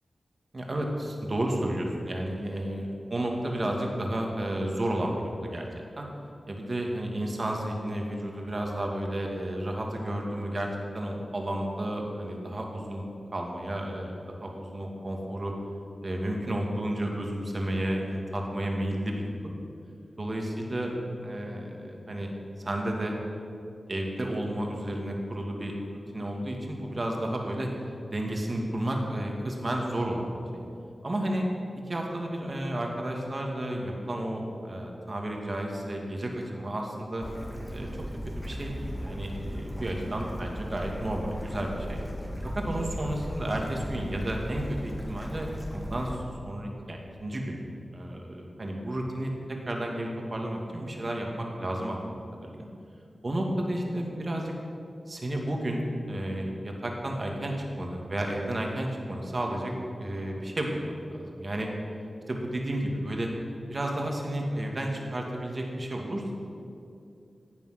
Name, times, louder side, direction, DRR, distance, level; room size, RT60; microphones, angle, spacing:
voice 1, 0.5-5.6 6.0-6.1 6.5-10.7 10.9-13.0 13.3-15.5 16.0-19.5 20.2-21.0 21.2-22.3 22.6-23.1 23.9-27.7 28.1-30.6 31.0-31.4 31.9-37.2 37.7-38.0 38.4-42.0 42.6-47.6 47.9-52.1 52.4-52.7 53.2-54.5 55.1-59.7 60.0-61.7 62.3-63.3 63.7-66.3, right 1 dB, 40° right, 0 dB, 2.4 m, -32 dB
Bird / Stream, 37.2-46.2, equal, 5° left, 1.9 m, -37 dB
15.0 x 9.1 x 6.1 m, 2.5 s
wide cardioid pair, 80°, 0 cm